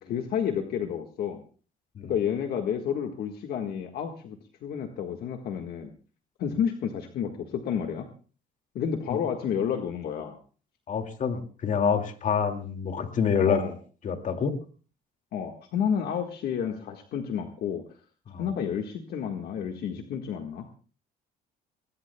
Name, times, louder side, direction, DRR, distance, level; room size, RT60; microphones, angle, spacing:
voice 1, 0.0-1.4 2.0-5.9 6.4-8.1 8.7-10.4 13.4-13.7 15.3-17.8 18.4-20.7, left 8 dB, 65° left, 4 dB, 1.6 m, -30 dB
voice 2, 10.9-13.6 14.0-14.5 18.3-18.5, left 6 dB, 50° left, 5 dB, 2.3 m, -27 dB
21.0 x 21.0 x 2.3 m, 0.39 s
cardioid pair, 110°, 17 cm